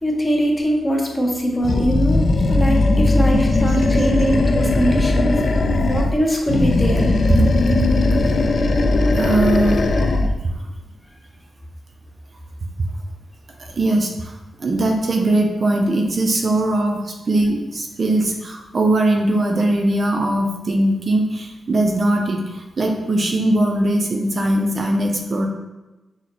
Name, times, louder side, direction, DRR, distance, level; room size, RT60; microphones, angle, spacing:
voice 1, 0.0-5.4 5.9-7.2, equal, 15° left, 0 dB, 0.6 m, -21 dB
Animal, 1.6-6.2 6.5-10.4, left 2 dB, 50° left, 0.3 m, -18 dB
voice 2, 9.1-9.9 13.7-14.3 14.6-25.5, right 1 dB, 40° right, 2 dB, 0.4 m, -20 dB
6.0 x 2.0 x 2.9 m, 1.1 s
wide cardioid pair, 145°, 0 cm